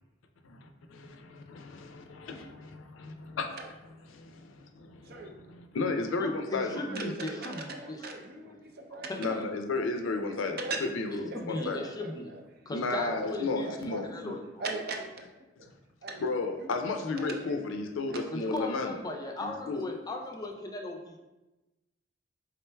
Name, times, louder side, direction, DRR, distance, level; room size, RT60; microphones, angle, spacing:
voice 1, 0.4-3.5 4.1-7.1 9.2-10.6 10.9-11.8 12.7-14.4 16.2-18.9 19.4-19.8, left 3 dB, 80° left, 5 dB, 0.4 m, -34 dB
voice 2, 5.0-5.4 6.9-9.5 10.0-10.8 11.3-12.4 12.9-14.3 14.6-15.3 15.6-15.7 16.0-16.2 16.6-17.6 18.1-18.3, right 3 dB, 50° right, 2 dB, 0.5 m, -40 dB
voice 3, 6.2-8.1 8.5-8.6 9.1-9.5 11.3-12.3 12.7-13.7 14.1-14.6 18.3-21.2, left 1 dB, 20° left, 2 dB, 0.4 m, -37 dB
4.3 x 3.6 x 2.2 m, 1.1 s
head